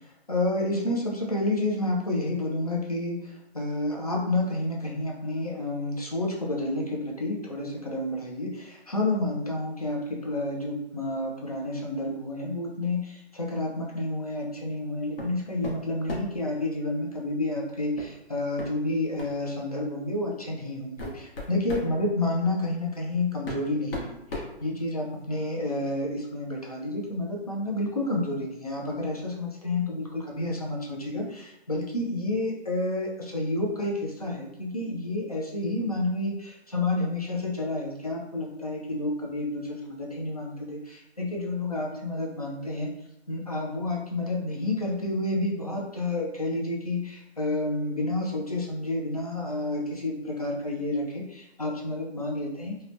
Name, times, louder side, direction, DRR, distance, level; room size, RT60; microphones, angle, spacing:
voice 1, 0.3-42.9 43.3-52.8, left 2 dB, 35° left, -2 dB, 0.4 m, -30 dB
sound 1, 15.2-15.4 15.6-16.4 18.0-18.1 18.6-18.7 19.2-19.4 20.2-20.3 20.8-21.9 23.0-23.1 23.4-25.2, left 2 dB, 60° left, 0.9 m, -36 dB
2.8 x 2.1 x 2.5 m, 0.86 s
hypercardioid pair, 170°, 33 cm